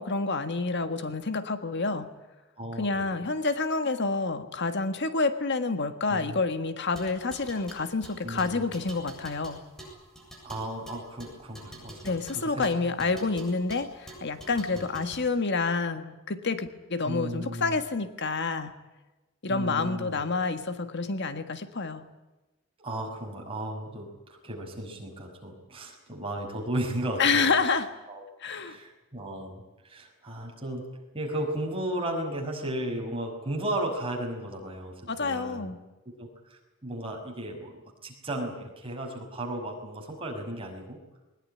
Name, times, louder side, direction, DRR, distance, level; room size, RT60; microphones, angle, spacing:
voice 1, 0.0-2.1 2.8-9.6 12.0-18.7 19.4-22.0 27.2-27.9 28.4-28.8 35.1-35.8, left 4 dB, 55° left, 9 dB, 1.6 m, -28 dB
voice 2, 2.6-3.2 6.1-6.4 8.2-8.6 10.4-12.2 12.4-12.7 13.0-13.2 14.7-14.9 17.0-17.7 19.5-20.4 22.8-27.5 28.1-28.2 28.6-30.8 31.1-35.7 36.2-37.7 38.0-41.0, right 1 dB, 25° right, 1 dB, 5.9 m, -35 dB
sound 1, 6.8-15.3, right 1 dB, ahead, 7.6 m, -47 dB
21.5 x 20.5 x 9.9 m, 1.1 s
head